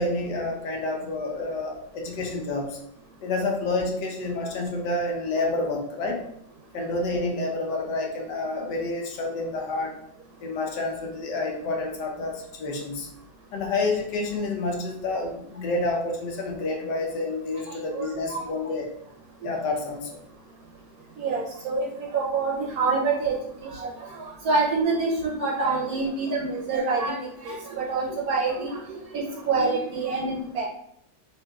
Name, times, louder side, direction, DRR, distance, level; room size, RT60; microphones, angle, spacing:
voice 1, 0.0-2.8 3.2-6.2 6.7-10.0 10.4-13.1 13.5-18.9 19.4-20.2, left 2 dB, 75° left, 1 dB, 1.4 m, -29 dB
voice 2, 17.7-18.5 21.2-23.4 23.6-28.8 29.1-30.7, right 4 dB, 65° right, -1 dB, 0.9 m, -27 dB
5.3 x 2.8 x 2.3 m, 0.73 s
omnidirectional pair, 1.9 m